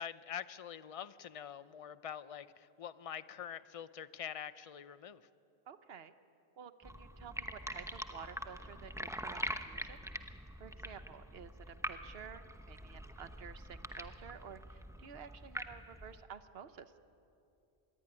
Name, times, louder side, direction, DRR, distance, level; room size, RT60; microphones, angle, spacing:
voice 1, 0.0-5.2, left 8 dB, 40° left, 15 dB, 0.7 m, -45 dB
voice 2, 5.7-6.1 6.6-17.0, right 7 dB, 75° right, 11 dB, 1.2 m, -52 dB
sound 1, 6.8-16.2, equal, 5° right, 0.9 m, -44 dB
26.0 x 21.0 x 9.9 m, 2.7 s
omnidirectional pair, 1.0 m